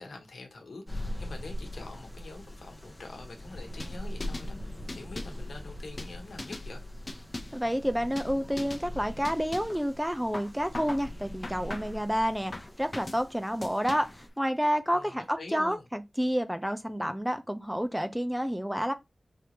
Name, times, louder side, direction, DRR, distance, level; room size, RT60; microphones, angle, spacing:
voice 1, 0.0-6.8 14.9-15.8, left 3 dB, 85° left, 1.2 m, -45 dB
sound 1, 0.9-14.3, left 1 dB, 15° left, 1.1 m, -41 dB
sound 2, 3.8-4.5 4.9-5.4 6.0-6.7 7.1-7.6 8.2-8.3 8.6-8.9 9.2-9.8 10.3-11.1 11.4-12.0 12.5-13.2 13.6-14.2, left 2 dB, 40° left, 0.9 m, -40 dB
voice 2, 7.5-14.1 14.4-18.9, equal, 5° right, 0.8 m, -29 dB
5.0 x 2.9 x 3.1 m
cardioid pair, 50°, 0 cm